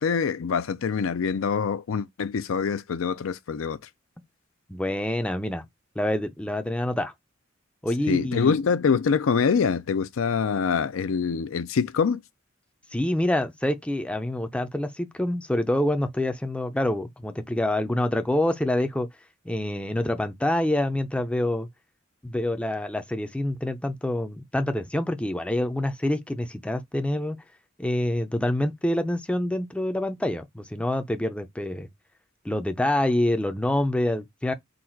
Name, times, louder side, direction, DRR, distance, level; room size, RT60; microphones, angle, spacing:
voice 1, 0.0-3.8 8.1-12.2, left 6 dB, 75° left, 0.4 m, -25 dB
voice 2, 4.7-5.6 6.0-7.1 7.8-8.6 12.9-19.1 19.5-21.7 22.2-27.4 27.8-31.9 32.4-34.5, left 1 dB, 5° left, 0.5 m, -26 dB
3.9 x 2.3 x 4.4 m
head